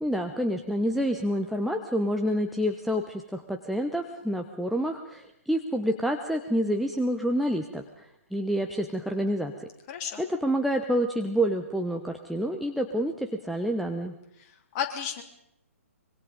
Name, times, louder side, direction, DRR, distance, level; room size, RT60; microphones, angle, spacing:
voice 1, 0.0-9.7 10.2-14.1, equal, ahead, 2 dB, 1.1 m, -28 dB
voice 2, 9.9-10.2 14.4-15.2, left 8 dB, 30° left, 3 dB, 3.2 m, -33 dB
25.5 x 23.0 x 5.3 m, 0.79 s
figure-of-eight pair, 125°, 8 cm